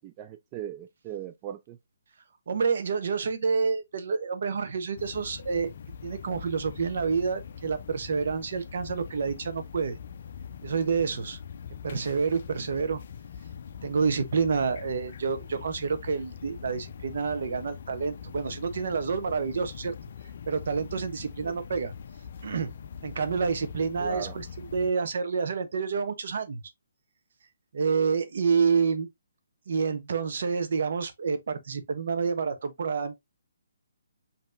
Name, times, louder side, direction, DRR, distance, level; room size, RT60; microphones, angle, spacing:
voice 1, 0.0-1.8 21.4-21.6 24.0-24.4, right 10 dB, 25° right, 0.3 m, -38 dB
voice 2, 2.5-5.7 6.0-10.0 10.6-11.4 11.8-13.0 13.8-19.9 20.5-21.9 22.4-22.7 23.0-24.4 24.7-26.6 27.7-29.1 29.7-33.2, right 5 dB, 60° right, 0.8 m, -28 dB
sound 1, 5.0-24.9, left 7 dB, 50° left, 0.5 m, -43 dB
5.5 x 2.8 x 2.4 m
hypercardioid pair, 155°, 0 cm